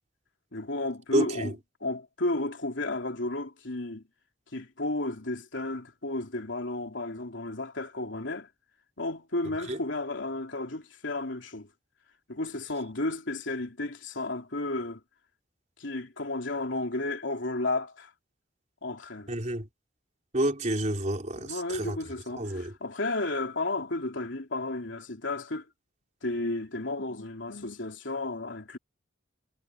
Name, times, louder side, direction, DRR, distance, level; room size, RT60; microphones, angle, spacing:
voice 1, 0.5-1.5 1.8-4.0 4.5-8.5 9.0-11.7 12.3-15.0 15.8-18.1 18.8-19.3 21.3-25.7 26.2-28.8, left 2 dB, 75° left, 3.2 m, -33 dB
voice 2, 1.1-1.5 9.7-9.8 19.3-19.7 20.3-22.0 22.4-22.7, right 1 dB, 40° right, 3.9 m, -29 dB
head